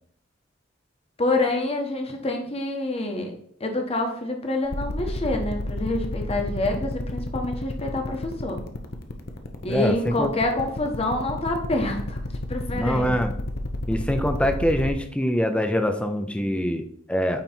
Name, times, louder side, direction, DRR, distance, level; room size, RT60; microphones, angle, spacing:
voice 1, 1.2-3.3 3.6-8.6 9.6-12.2 12.5-13.1, left 2 dB, 30° left, 3 dB, 1.1 m, -27 dB
sound 1, 4.7-14.9, left 2 dB, 55° left, 0.7 m, -30 dB
voice 2, 9.7-10.3 12.7-13.3 13.9-17.4, equal, 5° left, 7 dB, 0.6 m, -24 dB
8.8 x 3.1 x 4.3 m, 0.65 s
head